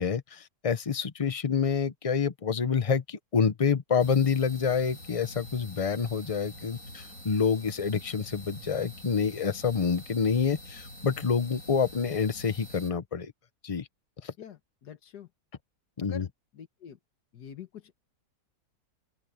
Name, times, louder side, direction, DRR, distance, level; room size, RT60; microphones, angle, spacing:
voice 1, 0.0-13.3 13.6-13.9 14.2-14.3 16.0-16.3, left 6 dB, 30° left, 0.7 m, -27 dB
sound 1, 4.0-12.9, left 1 dB, 55° left, 8.3 m, -46 dB
voice 2, 14.4-15.3 16.0-16.3 16.5-17.0 17.3-17.9, left 8 dB, 80° left, 1.8 m, -45 dB
open air
omnidirectional pair, 1.7 m